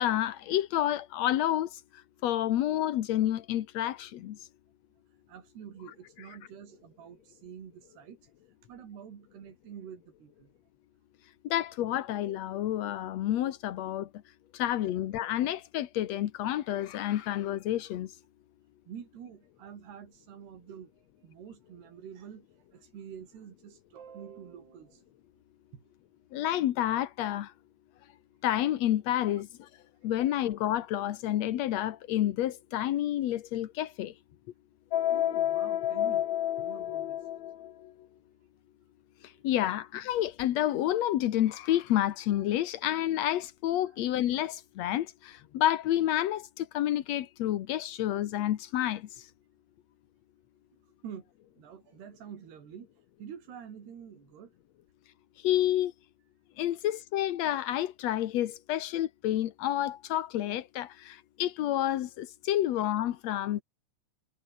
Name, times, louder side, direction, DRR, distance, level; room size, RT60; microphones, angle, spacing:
voice 1, 0.0-1.8 2.2-4.5 11.4-14.1 14.5-18.1 26.3-27.5 28.4-29.7 30.0-34.1 39.2-49.3 55.4-55.9 56.6-63.6, left 12 dB, 80° left, 1.5 m, -29 dB
voice 2, 5.1-10.5 14.9-15.0 18.9-25.1 25.7-25.8 30.0-30.1 35.1-36.2 36.6-37.3 39.3-39.5 43.9-44.0 50.8-51.2 51.6-54.6, right 8 dB, 80° right, 5.3 m, -47 dB
sound 1, 34.9-37.7, left 12 dB, 60° left, 2.0 m, -30 dB
omnidirectional pair, 4.6 m